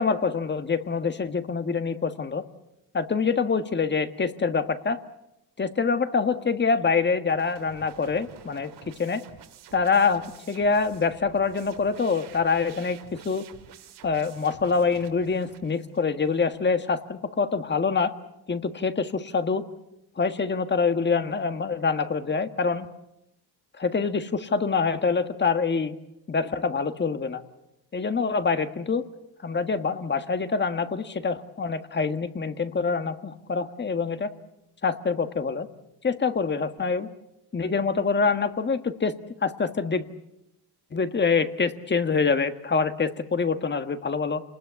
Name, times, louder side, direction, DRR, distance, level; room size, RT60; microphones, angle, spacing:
voice 1, 0.0-2.5 2.9-5.0 5.6-8.7 9.0-9.2 9.7-13.5 14.0-18.1 18.5-19.7 20.2-22.9 23.8-26.0 26.3-27.4 27.9-29.1 29.4-34.3 34.8-35.7 36.0-37.1 37.5-39.1 39.4-40.0 40.9-44.4, left 5 dB, 25° left, 9 dB, 1.6 m, -25 dB
sound 1, 7.3-16.6, right 10 dB, 75° right, 2.8 m, -50 dB
28.5 x 20.5 x 8.3 m, 0.87 s
cardioid pair, 110°, 40 cm